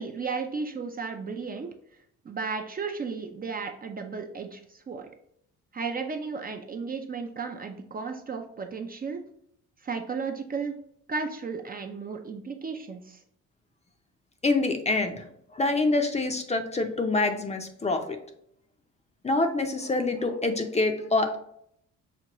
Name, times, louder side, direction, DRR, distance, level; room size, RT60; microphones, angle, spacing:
voice 1, 0.0-1.7 2.2-5.1 5.7-9.2 9.8-10.8 11.1-13.2, right 5 dB, 30° right, 4 dB, 0.4 m, -34 dB
voice 2, 14.4-15.2 15.5-18.2 19.2-21.4, left 2 dB, 20° left, 6 dB, 0.5 m, -26 dB
5.9 x 2.2 x 2.9 m, 0.70 s
cardioid pair, 90°, 30 cm